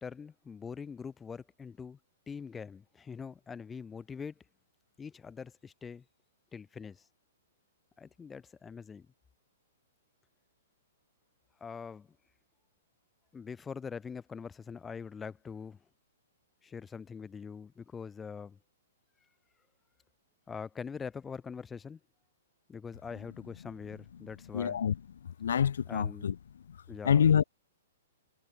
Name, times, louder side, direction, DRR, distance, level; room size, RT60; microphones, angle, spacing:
voice 1, 0.0-2.0 2.3-4.3 5.0-6.0 6.5-7.0 8.0-9.1 11.6-12.1 13.3-15.8 16.6-18.6 20.5-22.0 22.7-24.8 25.9-26.3 26.9-27.3, left 6 dB, 10° left, 0.5 m, -43 dB
voice 2, 24.5-25.0 25.2-26.4 26.7-26.8 27.0-27.4, left 8 dB, 80° left, 0.7 m, -26 dB
hypercardioid pair, 155°, 0 cm